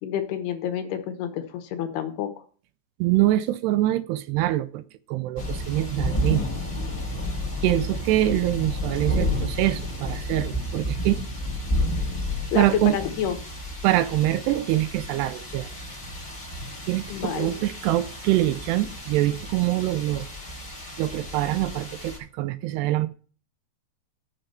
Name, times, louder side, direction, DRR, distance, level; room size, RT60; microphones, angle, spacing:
voice 1, 0.0-2.3 11.8-11.9 12.5-13.4 17.1-17.5, left 9 dB, 70° left, 3.2 m, -29 dB
voice 2, 3.0-4.8 5.1-6.5 7.6-11.2 12.5-13.0 13.8-15.7 16.9-20.3 21.0-23.1, right 15 dB, 80° right, 2.6 m, -24 dB
sound 1, 5.4-22.2, left 1 dB, 10° left, 4.9 m, -31 dB
11.5 x 6.9 x 5.7 m
omnidirectional pair, 4.9 m